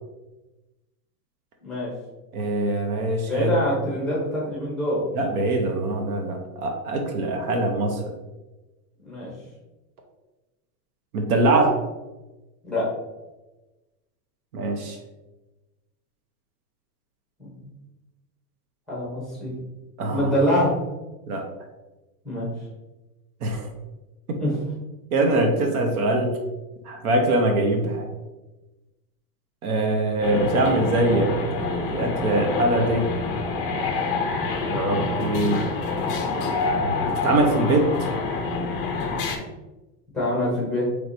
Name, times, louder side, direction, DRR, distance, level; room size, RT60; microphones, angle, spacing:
voice 1, 2.3-3.5 5.1-8.1 11.1-11.8 14.5-15.0 20.0-20.3 21.3-21.4 23.4-23.7 24.3-24.4 25.1-26.4 26.8-28.1 29.6-33.1 34.7-35.6 36.8-38.2, right 2 dB, 60° right, 3 dB, 0.8 m, -23 dB
voice 2, 3.3-5.0 9.0-9.3 12.6-12.9 17.4-17.7 18.9-19.5 20.1-20.7 22.2-22.5 24.4-24.6 40.1-40.8, equal, ahead, -7 dB, 0.8 m, -25 dB
sound 1, 30.2-39.4, left 4 dB, 40° left, 0.4 m, -27 dB
4.6 x 3.2 x 2.6 m, 1.1 s
supercardioid pair, 170°, 48 cm